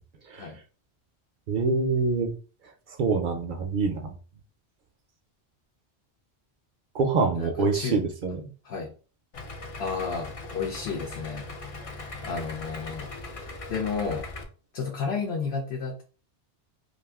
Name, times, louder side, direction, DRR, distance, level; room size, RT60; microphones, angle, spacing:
voice 1, 1.5-2.3 2.9-4.1 6.9-8.5, right 4 dB, 60° right, 5 dB, 0.6 m, -25 dB
voice 2, 7.3-8.0 8.6-8.9 9.8-11.5 12.2-13.1 13.7-14.3 14.7-16.0, left 5 dB, 70° left, 0 dB, 0.9 m, -32 dB
Idling, 9.3-14.4, left 2 dB, 45° left, 0.5 m, -39 dB
2.5 x 2.4 x 3.4 m, 0.36 s
omnidirectional pair, 1.1 m